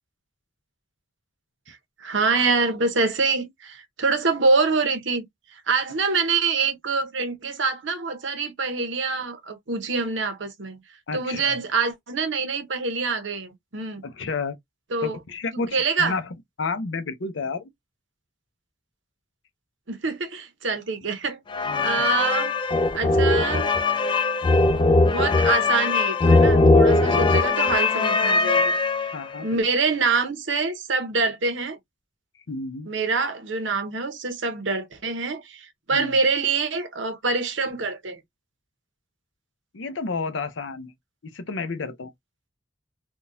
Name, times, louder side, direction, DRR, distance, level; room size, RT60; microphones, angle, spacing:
voice 1, 2.0-5.2 5.5-10.8 11.1-14.0 14.9-15.2 15.5-16.2 19.9-21.4 21.8-22.5 22.9-23.7 25.0-28.7 29.4-31.8 32.9-38.2, right 4 dB, 65° right, 0.9 m, -25 dB
voice 2, 11.1-11.6 14.0-14.6 15.0-17.7 21.7-22.1 29.1-29.6 32.5-32.9 35.9-36.2 39.7-40.9 41.2-42.1, left 4 dB, 65° left, 0.7 m, -31 dB
sound 1, 21.5-29.4, left 3 dB, 25° left, 0.3 m, -20 dB
3.7 x 2.3 x 2.6 m
head